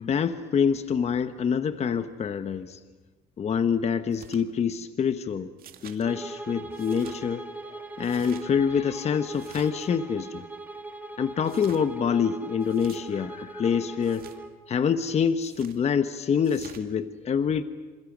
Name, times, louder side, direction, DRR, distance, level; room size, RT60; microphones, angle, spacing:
voice 1, 0.0-2.8 3.4-5.5 5.8-10.4 11.2-14.2 14.7-17.6, left 7 dB, 40° left, 10 dB, 1.1 m, -26 dB
sound 1, 4.1-4.4 5.6-6.0 6.7-7.2 8.0-8.4 9.3-9.9 11.4-11.8 12.6-13.0 14.0-14.4 15.4-15.8 16.4-16.8, right 10 dB, 60° right, 2.1 m, -48 dB
Bowed string instrument, 6.0-14.6, right 2 dB, 10° right, 2.9 m, -40 dB
27.5 x 27.5 x 6.2 m, 1.3 s
cardioid pair, 110°, 17 cm